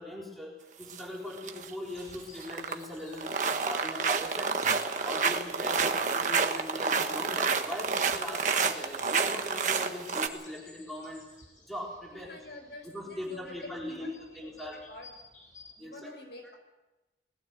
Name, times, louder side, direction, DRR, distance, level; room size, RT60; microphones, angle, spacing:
voice 1, 0.0-4.7 5.0-11.2 11.6-12.4 12.8-14.8 15.8-16.1, left 1 dB, ahead, -3 dB, 4.1 m, -40 dB
sound 1, 0.8-1.0 1.4-1.7 2.0-2.8 3.1-10.3, right 5 dB, 45° right, 1.4 m, -29 dB
sound 2, 1.9-15.7, left 3 dB, 45° left, 6.6 m, -56 dB
voice 2, 5.7-6.1 12.1-15.1 15.8-16.5, left 1 dB, 75° left, 4 dB, 5.2 m, -48 dB
20.0 x 16.0 x 8.2 m, 1.1 s
head